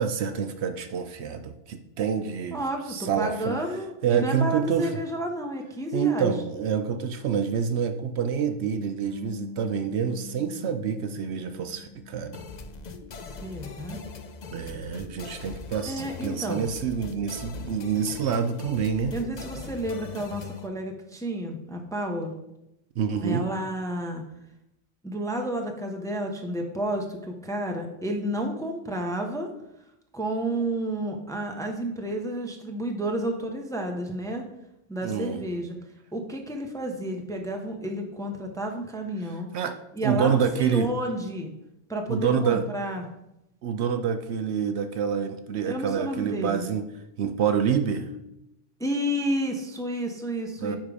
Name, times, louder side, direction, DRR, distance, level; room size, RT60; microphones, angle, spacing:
voice 1, 0.0-2.6 2.9-3.6 4.0-4.9 5.9-12.4 14.5-19.1 23.0-23.5 35.0-35.4 39.5-39.8 40.0-40.9 42.1-42.7 43.6-46.9 47.2-48.1 50.6-50.8, right 7 dB, 70° right, 8 dB, 0.8 m, -27 dB
voice 2, 2.5-6.3 13.4-14.0 15.8-16.6 19.1-22.3 23.2-24.2 25.0-29.5 30.1-34.4 34.9-35.8 36.1-39.5 39.9-41.5 41.9-43.0 45.6-46.7 48.8-50.8, right 1 dB, 5° left, 2 dB, 0.7 m, -31 dB
Bass guitar, 9.0-15.3, left 6 dB, 25° left, 1.5 m, -46 dB
sound 1, 12.3-20.7, left 4 dB, 50° left, 0.6 m, -41 dB
9.8 x 3.7 x 4.9 m, 0.87 s
omnidirectional pair, 1.2 m